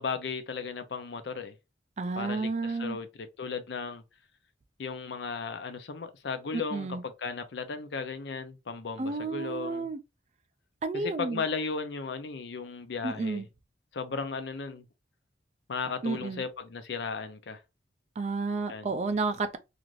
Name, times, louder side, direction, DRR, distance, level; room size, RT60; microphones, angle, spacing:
voice 1, 0.0-1.5 2.2-4.0 4.8-9.9 10.9-13.5 13.9-14.9 15.7-17.6 18.7-18.9, left 5 dB, 65° left, 0.5 m, -35 dB
voice 2, 2.0-3.0 6.5-7.0 9.0-10.0 10.8-11.4 13.0-13.5 16.0-16.4 18.2-19.6, right 3 dB, 35° right, 0.3 m, -31 dB
2.5 x 2.5 x 3.0 m
head